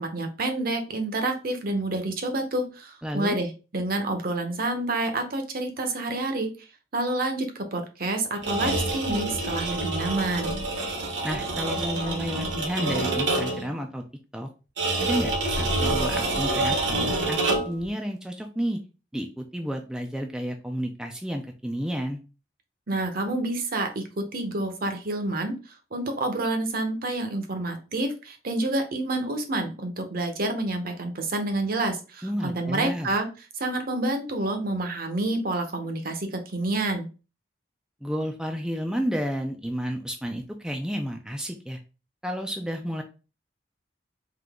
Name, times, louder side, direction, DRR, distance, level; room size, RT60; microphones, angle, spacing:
voice 1, 0.0-6.5 6.9-10.5 22.9-25.6 25.9-33.3 33.6-37.1, right 2 dB, 55° right, 6 dB, 0.8 m, -28 dB
voice 2, 3.0-3.4 11.2-14.0 14.3-14.5 15.0-18.8 19.1-22.2 32.2-33.1 38.0-41.8 42.2-43.0, equal, 5° right, 3 dB, 0.4 m, -31 dB
sound 1, 8.4-13.7 14.8-17.8, right 2 dB, 75° right, 1.2 m, -27 dB
3.8 x 2.8 x 3.5 m, 0.32 s
head